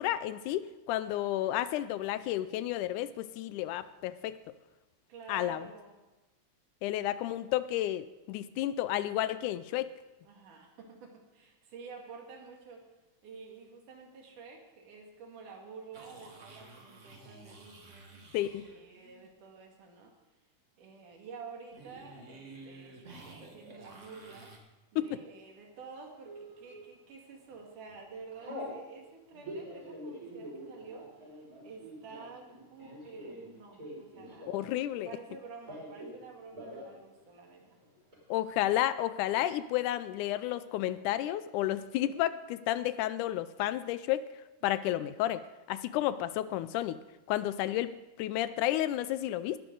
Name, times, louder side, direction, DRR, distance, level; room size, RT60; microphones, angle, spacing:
voice 1, 0.0-4.4 5.3-5.7 6.8-9.9 18.3-18.7 25.0-25.2 34.5-35.1 38.3-44.3 44.6-47.0 47.3-47.9 48.2-49.6, left 13 dB, 80° left, 14 dB, 2.0 m, -31 dB
voice 2, 5.1-6.0 10.2-12.9 13.2-20.1 20.8-24.6 24.9-34.6 35.1-37.8 44.6-44.7, right 5 dB, 75° right, 1 dB, 3.5 m, -50 dB
sound 1, 15.9-19.3 21.7-24.6, right 3 dB, 40° right, 1.0 m, -52 dB
Telephone, 26.2-26.8 27.3-27.6 27.9-28.8 29.3-34.8 35.1-36.2 36.5-36.9 37.2-37.3 37.6-38.2, equal, 25° right, 5.9 m, -45 dB
19.5 x 11.5 x 3.9 m, 1.1 s
omnidirectional pair, 3.7 m